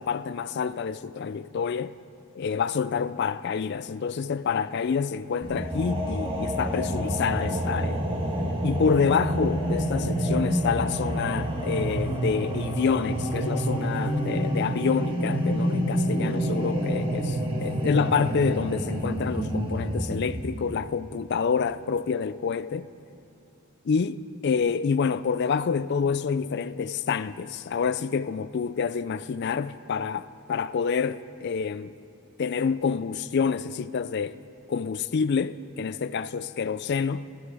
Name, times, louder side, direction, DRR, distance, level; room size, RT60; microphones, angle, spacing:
voice 1, 0.0-2.0 2.3-8.0 8.6-22.9 23.8-32.0 32.4-34.4 34.7-37.3, left 6 dB, 50° left, 0.4 m, -27 dB
sound 1, 5.4-20.4, equal, 25° right, 1.6 m, -28 dB
15.5 x 13.5 x 4.9 m
head